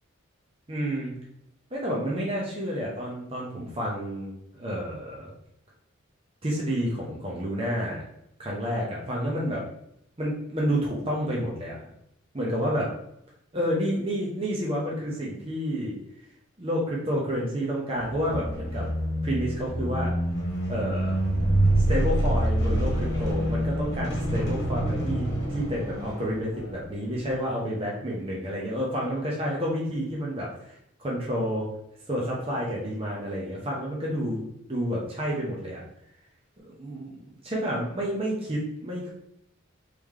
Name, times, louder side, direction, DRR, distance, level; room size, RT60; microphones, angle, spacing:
voice 1, 0.7-1.1 1.7-5.3 6.4-8.0 8.4-9.6 10.2-11.8 12.3-12.9 13.5-15.9 16.6-18.9 19.2-20.1 20.7-21.2 21.9-31.7 32.1-34.4 34.7-35.8 36.8-37.1 37.4-39.1, equal, 30° right, -4 dB, 0.8 m, -29 dB
sound 1, 18.0-26.8, right 1 dB, 55° left, 1.2 m, -26 dB
3.2 x 3.0 x 3.6 m, 0.76 s
head